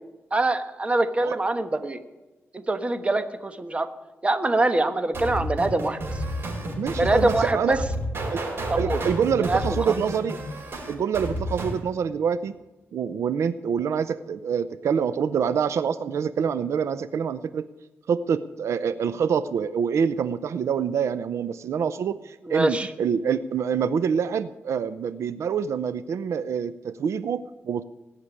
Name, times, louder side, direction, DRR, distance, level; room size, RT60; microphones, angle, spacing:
voice 1, 0.3-2.0 2.5-3.9 4.2-6.2 7.0-7.8 8.7-9.0 9.5-9.6 9.9-10.0 22.4-22.9, right 2 dB, 25° right, 9 dB, 1.2 m, -24 dB
sound 1, 5.1-11.8, right 1 dB, 55° right, 4.9 m, -30 dB
voice 2, 6.8-7.8 8.3-8.4 8.8-10.4 10.9-12.5 12.9-17.7 18.1-27.8, right 7 dB, 80° right, 14 dB, 0.6 m, -26 dB
18.0 x 6.7 x 9.8 m, 1.1 s
wide cardioid pair, 110°, 5 cm